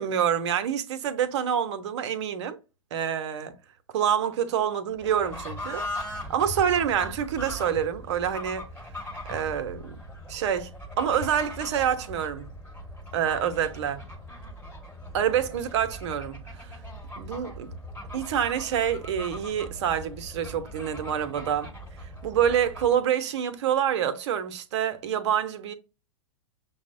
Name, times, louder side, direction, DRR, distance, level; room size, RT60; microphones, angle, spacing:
voice 1, 0.0-2.6 2.9-3.5 3.9-8.6 9.3-10.0 10.3-10.7 11.0-12.5 13.1-14.0 15.1-16.8 17.2-17.5 18.1-21.7 22.2-25.7, right 9 dB, 60° right, 0.7 m, -27 dB
Fowl / Bird, 5.0-23.0, left 1 dB, 10° left, 1.2 m, -40 dB
6.0 x 2.0 x 2.5 m
hypercardioid pair, 105°, 17 cm